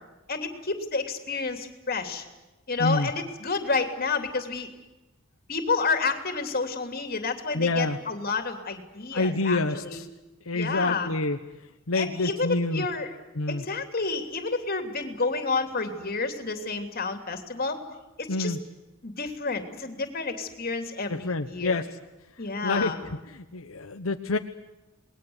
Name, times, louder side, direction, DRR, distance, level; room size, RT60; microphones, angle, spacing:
voice 1, 0.3-2.2 2.7-4.7 5.5-10.0 10.5-11.1 11.9-13.1 13.5-17.8 18.2-18.6 19.0-21.8 22.4-23.0, left 4 dB, 45° left, 6 dB, 3.1 m, -30 dB
voice 2, 2.8-3.1 7.5-8.0 9.1-10.1 10.5-11.4 11.9-12.9 13.3-13.6 18.3-18.6 21.1-21.9 22.6-22.9 23.3-24.4, left 2 dB, 85° left, 6 dB, 1.2 m, -27 dB
28.5 x 20.5 x 8.1 m, 1.1 s
head